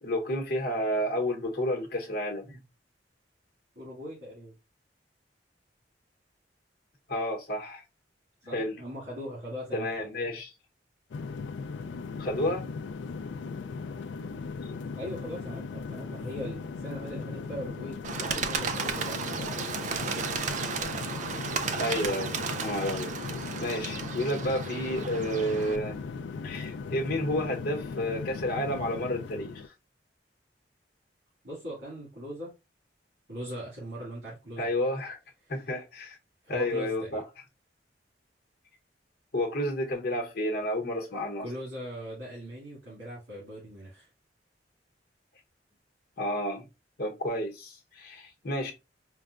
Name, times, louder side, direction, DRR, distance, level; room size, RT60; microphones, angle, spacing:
voice 1, 0.0-2.6 7.1-7.8 8.5-8.8 9.7-10.5 12.2-12.7 14.6-14.8 21.8-23.1 23.6-26.0 26.4-29.5 34.6-35.2 35.5-36.2 36.5-37.2 39.3-41.5 46.2-46.6 47.0-48.7, left 1 dB, 60° left, 1.0 m, -31 dB
voice 2, 3.8-4.5 8.4-10.1 14.9-19.7 31.4-32.5 33.3-34.7 35.4-35.5 36.4-37.2 41.4-44.1, equal, 85° right, 2.1 m, -40 dB
sound 1, 11.1-29.7, left 4 dB, 90° left, 0.3 m, -38 dB
Bird, 18.0-25.8, right 5 dB, 45° right, 0.4 m, -34 dB
4.7 x 2.2 x 2.4 m
head